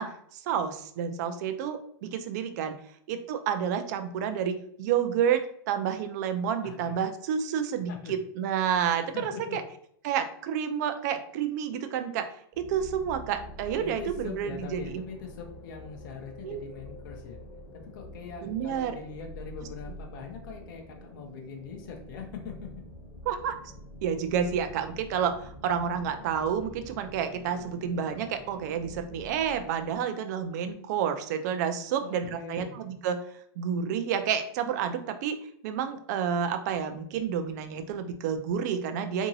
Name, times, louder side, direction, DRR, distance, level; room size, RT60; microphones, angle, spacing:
voice 1, 0.0-2.8 3.1-9.6 10.0-15.0 16.4-16.6 18.4-19.0 23.3-23.6 24.0-33.2 33.6-35.4 35.6-39.3, right 8 dB, 45° right, 8 dB, 0.4 m, -30 dB
voice 2, 6.6-7.0 7.9-8.1 9.1-9.6 13.8-17.4 17.7-22.7 32.0-32.8, left 5 dB, 55° left, 2 dB, 0.6 m, -42 dB
sound 1, 12.5-30.0, left 1 dB, 30° left, 0.8 m, -46 dB
2.8 x 2.6 x 2.6 m, 0.64 s
supercardioid pair, 165°, 13 cm